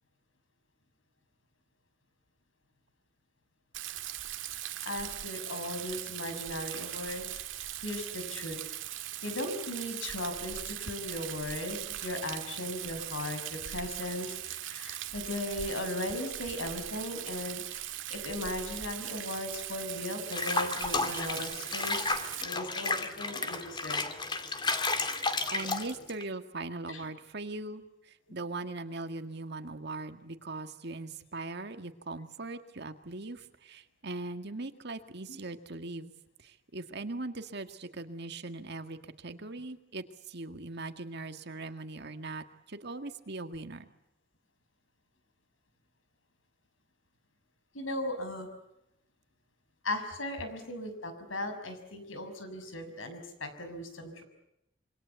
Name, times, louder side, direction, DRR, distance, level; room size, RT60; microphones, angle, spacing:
Rain, 3.7-22.4, right 12 dB, 80° right, 1.9 m, -40 dB
voice 1, 4.8-7.3 7.8-8.6 9.2-22.1 22.4-24.1 26.9-27.1 28.3-28.4 35.3-35.4 47.7-48.5 49.8-54.2, left 1 dB, 85° left, 8 dB, 6.2 m, -37 dB
Water / Bathtub (filling or washing), 20.3-26.2, left 3 dB, 25° left, 2.3 m, -32 dB
voice 2, 25.5-36.1 36.4-43.9, right 2 dB, 60° right, 8 dB, 1.9 m, -40 dB
27.0 x 25.0 x 8.2 m, 0.84 s
head